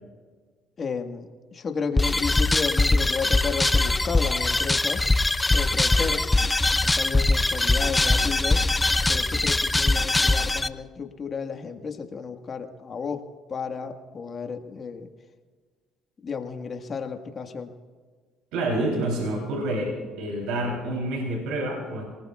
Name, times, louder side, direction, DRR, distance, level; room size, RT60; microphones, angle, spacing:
voice 1, 0.8-5.0 5.5-6.2 6.9-8.6 9.1-13.2 13.5-15.1 16.2-17.7, left 5 dB, 40° left, 5 dB, 1.6 m, -32 dB
sound 1, 2.0-10.7, left 2 dB, 15° left, 0.5 m, -22 dB
voice 2, 18.5-22.0, right 1 dB, 85° right, 0 dB, 3.4 m, -28 dB
27.5 x 19.0 x 2.4 m, 1.5 s
supercardioid pair, 80°, 0 cm